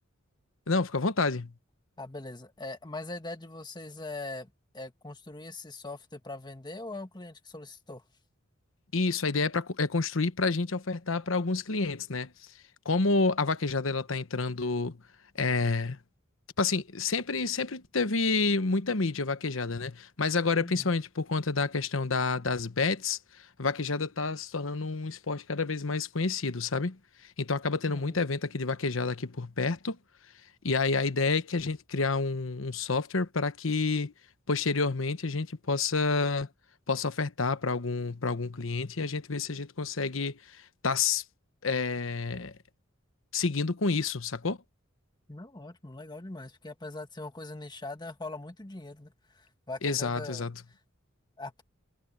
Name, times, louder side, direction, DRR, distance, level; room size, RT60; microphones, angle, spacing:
voice 1, 0.7-1.5 8.9-12.3 12.8-15.0 15.3-16.0 16.6-23.2 23.6-27.0 27.4-30.0 30.6-34.1 34.5-36.5 36.9-41.2 41.6-42.5 43.3-44.6 49.8-50.5, left 4 dB, 75° left, 1.1 m, -29 dB
voice 2, 2.0-8.0 20.6-20.9 27.9-28.3 45.3-50.5 51.4-51.6, left 2 dB, 20° left, 1.7 m, -41 dB
head